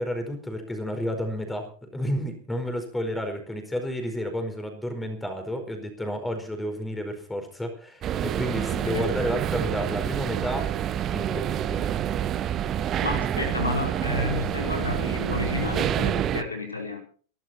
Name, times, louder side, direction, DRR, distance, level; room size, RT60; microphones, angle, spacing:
voice 1, 0.0-10.7 11.1-11.9, equal, 5° left, 6 dB, 4.7 m, -31 dB
sound 1, 8.0-16.4, right 10 dB, 30° right, 1.1 m, -27 dB
voice 2, 8.7-9.1 13.0-17.0, left 3 dB, 80° left, 3 dB, 4.7 m, -31 dB
21.5 x 12.0 x 4.4 m, 0.43 s
figure-of-eight pair, 90°, 0 cm